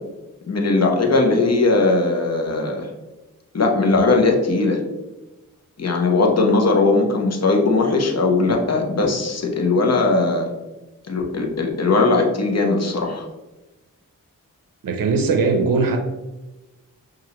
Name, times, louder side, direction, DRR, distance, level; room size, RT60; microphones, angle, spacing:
voice 1, 0.5-2.9 3.5-4.8 5.8-10.5 11.1-13.3, left 3 dB, 50° left, 1 dB, 0.9 m, -19 dB
voice 2, 14.8-16.0, right 4 dB, 75° right, 5 dB, 0.5 m, -19 dB
5.6 x 2.6 x 2.9 m, 1.1 s
cardioid pair, 50°, 34 cm